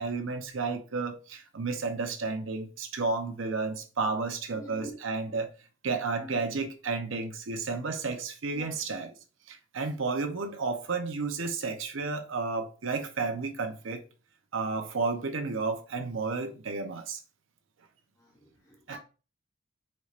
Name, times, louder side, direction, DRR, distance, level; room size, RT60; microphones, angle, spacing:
voice 1, 0.0-5.5 5.8-9.1 9.5-14.0 14.5-17.2 18.9-19.0, right 4 dB, 70° right, 0.6 m, -32 dB
voice 2, 4.5-5.0 6.2-6.4 8.5-8.8 18.2-19.0, right 1 dB, 15° left, 0.8 m, -46 dB
4.2 x 3.3 x 2.4 m
head